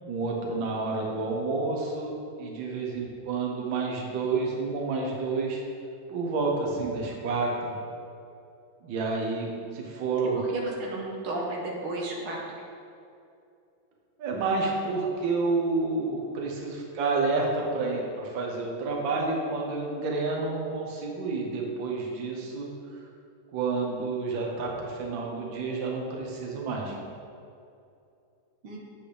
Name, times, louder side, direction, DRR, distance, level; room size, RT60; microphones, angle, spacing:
voice 1, 0.0-5.6 6.1-7.8 8.8-10.4 14.2-23.0 23.5-27.0, right 3 dB, 70° right, -1 dB, 1.8 m, -29 dB
voice 2, 10.4-12.4 28.6-28.8, right 2 dB, 90° right, -2 dB, 2.1 m, -33 dB
8.6 x 7.9 x 3.4 m, 2.5 s
omnidirectional pair, 2.3 m